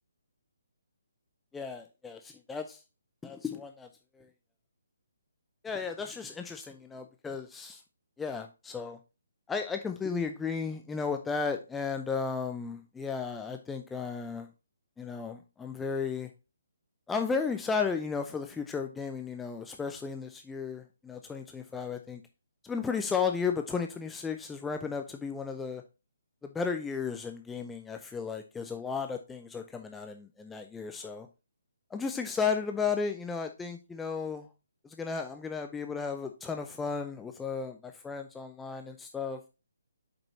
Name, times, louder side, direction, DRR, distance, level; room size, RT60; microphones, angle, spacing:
voice 1, 1.5-2.8 3.2-3.9 4.2-4.3 5.6-7.8 8.2-9.0 9.5-14.5 15.0-16.3 17.1-22.2 22.6-25.8 26.4-31.3 31.9-34.5 34.8-39.5, left 5 dB, 5° left, 5 dB, 0.5 m, -34 dB
7.3 x 5.3 x 2.7 m, 0.28 s
figure-of-eight pair, 140°, 0 cm